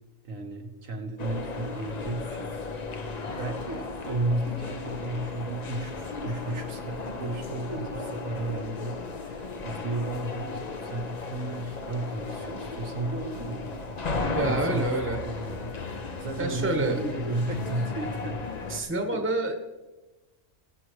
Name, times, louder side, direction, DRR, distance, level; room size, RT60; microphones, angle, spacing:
voice 1, 0.2-2.5 3.3-15.8 16.2-19.2, right 2 dB, 75° right, 3 dB, 1.6 m, -34 dB
sound 1, 1.2-18.8, left 3 dB, 35° left, 0.8 m, -35 dB
voice 2, 14.3-15.2 16.4-17.0 18.7-19.6, right 2 dB, 10° right, 3 dB, 1.1 m, -27 dB
20.0 x 7.6 x 3.1 m, 1.1 s
omnidirectional pair, 1.4 m